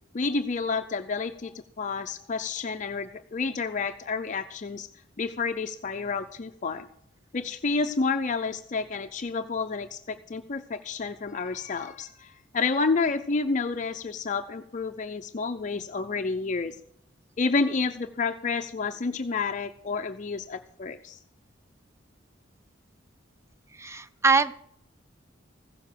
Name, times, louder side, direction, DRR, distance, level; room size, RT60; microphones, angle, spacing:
voice 1, 0.1-4.9 5.2-6.9 7.3-16.8 17.4-21.2, left 4 dB, 40° left, 7 dB, 0.5 m, -30 dB
voice 2, 23.7-24.5, right 4 dB, 15° right, 13 dB, 0.5 m, -23 dB
15.5 x 7.0 x 7.4 m, 0.71 s
head